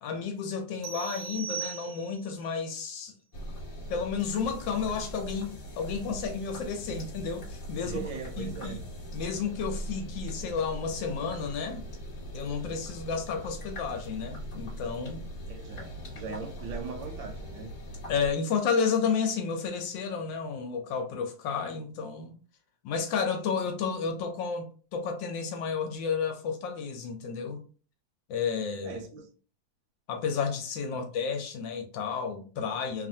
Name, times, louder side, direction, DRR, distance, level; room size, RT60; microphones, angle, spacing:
voice 1, 0.0-3.1 3.9-8.0 8.4-8.8 9.1-11.8 12.3-15.2 18.1-22.3 22.8-27.6 28.3-29.0 30.1-33.1, left 6 dB, 75° left, 1.2 m, -31 dB
sound 1, 0.8-2.4, right 8 dB, 60° right, 0.8 m, -38 dB
sound 2, 3.3-18.3, equal, 30° left, 1.2 m, -41 dB
voice 2, 7.8-8.8 15.5-17.7 28.8-29.3, right 5 dB, 75° right, 1.3 m, -39 dB
3.2 x 2.4 x 2.6 m
omnidirectional pair, 2.2 m